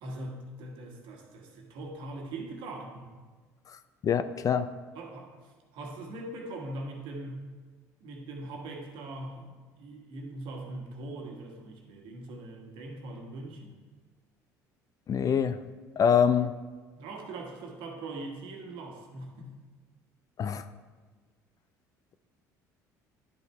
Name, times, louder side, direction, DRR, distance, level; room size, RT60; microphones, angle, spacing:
voice 1, 0.0-3.1 4.9-5.3 5.7-7.4 8.0-13.8 17.0-19.5, right 2 dB, 65° right, 1 dB, 1.4 m, -41 dB
voice 2, 4.0-4.7 15.1-15.6 16.0-16.5 20.4-20.6, left 7 dB, 40° left, 12 dB, 0.4 m, -24 dB
10.0 x 5.3 x 3.2 m, 1.4 s
hypercardioid pair, 65°, 9 cm